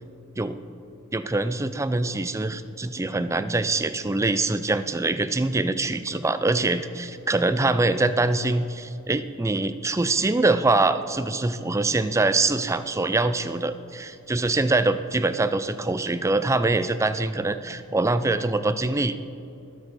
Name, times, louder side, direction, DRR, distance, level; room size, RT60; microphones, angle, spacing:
voice 1, 1.1-19.3, right 2 dB, 15° right, 11 dB, 0.4 m, -24 dB
20.5 x 7.0 x 4.2 m, 2.7 s
head